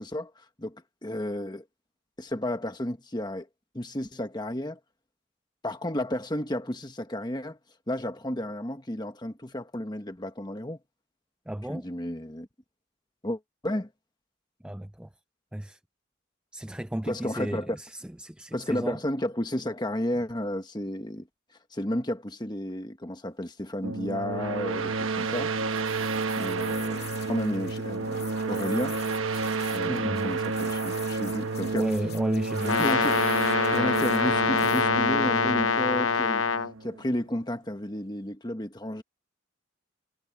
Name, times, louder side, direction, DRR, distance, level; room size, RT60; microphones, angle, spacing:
voice 1, 0.0-1.6 2.2-3.5 3.7-4.8 5.6-7.6 7.9-10.8 11.7-12.5 13.2-13.9 17.0-17.8 18.5-21.3 21.7-25.5 26.3-29.0 29.7-31.9 32.8-33.2 33.7-36.4 36.8-39.0, left 1 dB, 20° left, 1.4 m, -32 dB
voice 2, 11.5-11.9 14.6-15.1 15.5-15.8 16.5-19.0 29.8-30.3 31.7-32.9, right 1 dB, 5° right, 0.4 m, -33 dB
sound 1, 23.8-37.2, right 4 dB, 85° right, 1.1 m, -30 dB
sound 2, 25.2-34.8, left 12 dB, 55° left, 2.2 m, -47 dB
Brass instrument, 32.6-36.7, left 5 dB, 80° left, 0.9 m, -25 dB
head